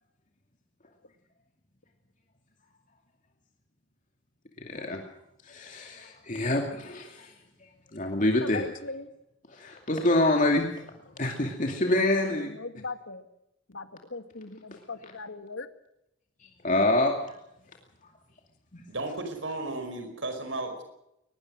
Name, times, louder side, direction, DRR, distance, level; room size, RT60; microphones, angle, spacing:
voice 1, 4.7-5.0 5.4-7.3 7.9-8.6 9.5-10.8 11.2-12.5 16.6-17.1 18.7-18.8, left 1 dB, 40° left, 2 dB, 2.6 m, -26 dB
voice 2, 8.4-9.1 12.3-13.3 13.7-15.7, left 3 dB, 80° left, 8 dB, 2.2 m, -39 dB
voice 3, 18.9-20.8, right 2 dB, 75° right, 6 dB, 4.9 m, -34 dB
22.5 x 20.5 x 6.4 m, 0.83 s
head